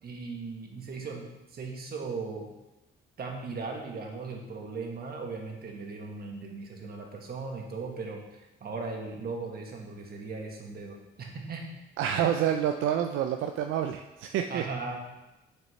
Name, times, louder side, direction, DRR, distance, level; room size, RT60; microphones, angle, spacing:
voice 1, 0.0-2.5 3.2-8.2 8.6-11.6 12.1-12.4 14.5-15.0, right 4 dB, 50° right, 1 dB, 1.5 m, -38 dB
voice 2, 12.0-14.6, right 9 dB, 80° right, 5 dB, 0.4 m, -28 dB
6.8 x 6.5 x 3.2 m, 0.99 s
cardioid pair, 90°, 20 cm